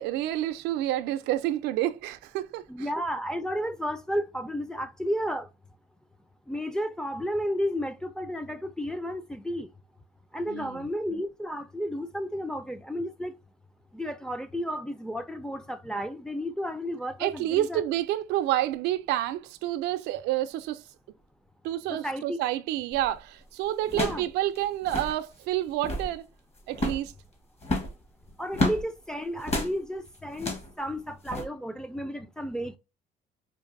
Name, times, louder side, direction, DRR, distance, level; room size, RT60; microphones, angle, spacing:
voice 1, 0.0-2.9 10.5-10.9 17.2-20.8 21.6-26.2 26.7-27.1, right 13 dB, 90° right, 0.4 m, -29 dB
voice 2, 2.7-5.5 6.5-9.7 10.3-13.3 13.9-17.8 21.9-22.4 23.9-24.3 28.4-32.8, equal, 5° left, 0.4 m, -32 dB
sound 1, 22.9-23.2 23.9-24.3 24.6-24.7 24.8-25.2 25.7-26.1 26.7-27.1 27.6-28.8 29.4-29.7 30.3-30.7 31.3-31.4, left 1 dB, 40° left, 1.3 m, -30 dB
4.6 x 2.5 x 2.5 m
cardioid pair, 110°, 17 cm